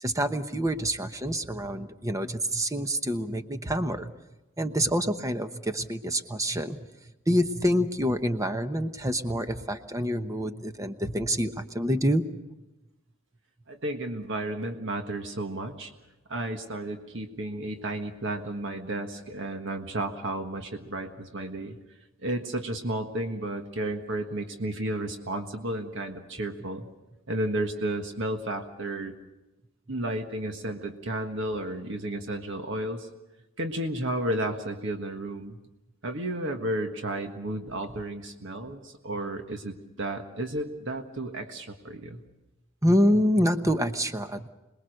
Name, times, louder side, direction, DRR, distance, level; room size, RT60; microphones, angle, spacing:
voice 1, 0.0-4.1 4.6-6.8 7.3-12.2 42.8-44.5, equal, 15° right, 9 dB, 1.0 m, -27 dB
voice 2, 13.7-15.9 16.3-21.7 22.2-26.8 27.3-29.1 29.9-33.1 33.6-35.6 36.0-42.2, right 1 dB, 60° right, 5 dB, 1.6 m, -32 dB
26.5 x 20.5 x 6.5 m, 1.0 s
head